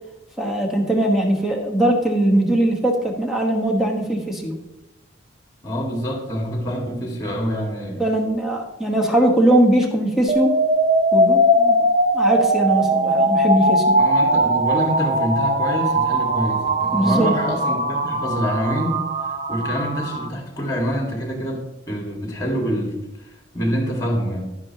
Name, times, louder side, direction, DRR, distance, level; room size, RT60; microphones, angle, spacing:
voice 1, 0.4-4.6 8.0-10.5 11.1-11.8 12.1-14.0 16.9-17.3, right 1 dB, ahead, 0 dB, 1.3 m, -20 dB
voice 2, 5.6-8.0 14.0-19.0 19.3-23.0 23.5-24.5, equal, 20° left, 1 dB, 2.0 m, -26 dB
sound 1, 10.3-20.3, right 1 dB, 40° right, 0.7 m, -20 dB
11.5 x 9.7 x 2.9 m, 0.97 s
head